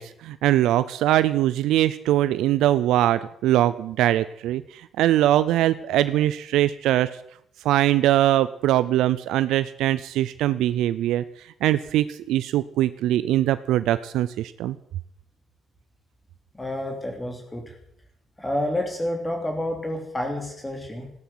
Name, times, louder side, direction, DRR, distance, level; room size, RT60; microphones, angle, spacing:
voice 1, 0.0-7.1 7.6-11.2 11.6-14.8, right 13 dB, 90° right, 14 dB, 0.6 m, -22 dB
voice 2, 16.5-17.7 18.4-21.1, left 1 dB, 15° left, 3 dB, 2.9 m, -29 dB
14.5 x 11.5 x 8.0 m, 0.72 s
cardioid pair, 90°, 0 cm